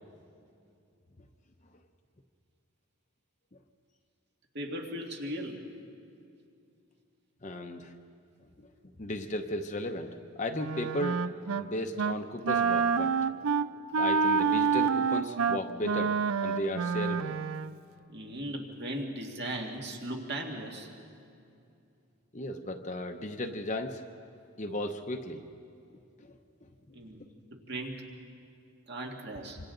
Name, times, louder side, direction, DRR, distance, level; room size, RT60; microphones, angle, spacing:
voice 1, 4.5-5.6 18.1-20.9 26.9-27.2 27.7-28.0 28.9-29.6, right 1 dB, 50° right, 1 dB, 2.1 m, -37 dB
voice 2, 7.4-7.9 8.6-8.7 9.0-11.2 11.6-13.1 14.0-16.2 16.4-17.3 22.3-24.0 24.6-25.4 26.2-26.3, left 1 dB, 35° left, 4 dB, 0.8 m, -35 dB
Wind instrument woodwind instrument, 10.5-11.7 12.0-12.2 12.5-17.7, right 5 dB, 70° right, 0.5 m, -28 dB
26.5 x 25.5 x 3.9 m, 2.5 s
head